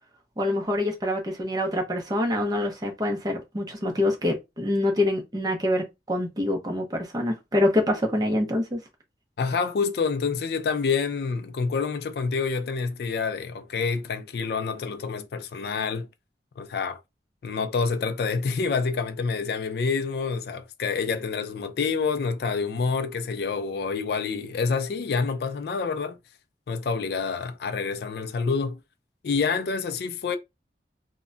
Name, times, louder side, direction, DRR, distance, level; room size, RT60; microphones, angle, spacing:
voice 1, 0.4-8.8, left 1 dB, 20° right, 0.6 m, -25 dB
voice 2, 9.4-16.1 16.6-17.0 17.4-26.2 26.7-28.8 29.2-30.4, left 5 dB, 65° left, 0.3 m, -27 dB
2.1 x 2.1 x 3.6 m
head